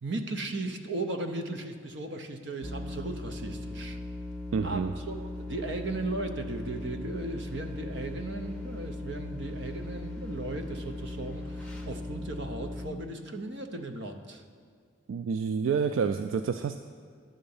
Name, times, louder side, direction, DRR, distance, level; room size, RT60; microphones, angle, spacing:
voice 1, 0.0-4.0 4.6-14.4, right 2 dB, 65° right, 6 dB, 0.7 m, -36 dB
sound 1, 2.6-12.9, left 1 dB, 5° left, 0.6 m, -38 dB
voice 2, 4.5-4.9 15.1-16.8, right 6 dB, 80° right, 8 dB, 0.3 m, -28 dB
10.5 x 3.8 x 7.0 m, 2.1 s
head